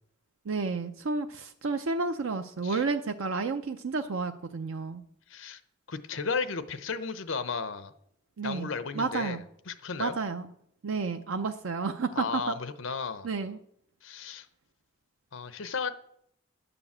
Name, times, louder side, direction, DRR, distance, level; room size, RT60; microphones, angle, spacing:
voice 1, 0.5-5.0 8.4-9.4 10.0-10.5 10.8-12.5 13.2-13.6, right 4 dB, 85° right, 0.6 m, -31 dB
voice 2, 5.3-5.6 5.9-7.9 8.4-10.2 12.1-13.3 14.0-14.5 15.3-15.9, left 5 dB, 75° left, 0.8 m, -34 dB
10.5 x 6.9 x 7.2 m
head